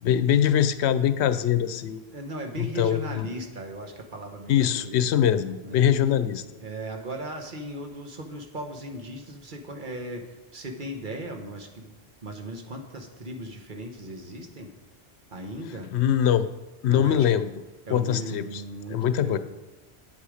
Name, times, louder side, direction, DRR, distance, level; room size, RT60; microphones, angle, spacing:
voice 1, 0.0-2.0 2.6-3.3 4.5-6.4 15.9-16.5 16.8-17.5 17.9-18.6 18.9-19.4, left 9 dB, 90° left, 12 dB, 0.9 m, -23 dB
voice 2, 2.1-5.0 5.6-5.9 6.6-14.7 15.3-15.9 16.9-17.5 17.9-19.4, right 1 dB, 50° right, 4 dB, 1.2 m, -37 dB
8.8 x 8.3 x 5.0 m, 1.2 s
omnidirectional pair, 1.1 m